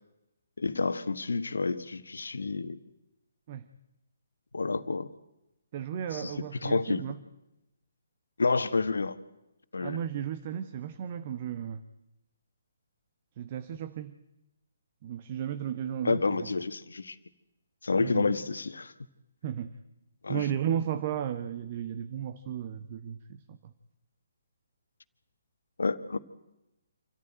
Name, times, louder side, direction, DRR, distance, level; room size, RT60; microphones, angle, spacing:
voice 1, 0.6-2.8 4.5-5.1 6.1-6.3 6.6-7.0 8.4-9.2 9.7-10.0 16.0-17.2 17.8-18.9 20.2-20.4 25.8-26.2, left 3 dB, 70° left, 12 dB, 1.4 m, -29 dB
voice 2, 5.7-7.2 9.8-11.8 13.4-14.2 15.0-16.5 18.0-18.3 19.4-19.7 20.3-23.7, right 9 dB, 35° right, 11 dB, 1.1 m, -34 dB
27.5 x 14.5 x 9.1 m, 0.93 s
figure-of-eight pair, 135°, 0 cm